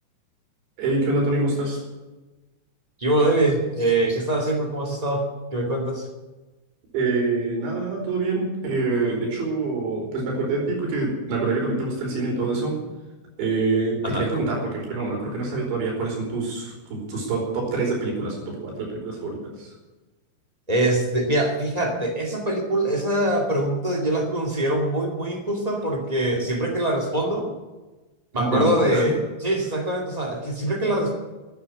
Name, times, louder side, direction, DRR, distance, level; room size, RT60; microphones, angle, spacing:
voice 1, 0.8-1.8 6.9-12.8 13.4-19.7 28.3-29.1, right 3 dB, 85° right, -1 dB, 7.0 m, -26 dB
voice 2, 3.0-6.1 14.0-14.2 20.7-27.5 28.3-31.1, right 1 dB, 25° right, 1 dB, 0.8 m, -23 dB
12.0 x 9.6 x 9.8 m, 1.2 s
omnidirectional pair, 5.0 m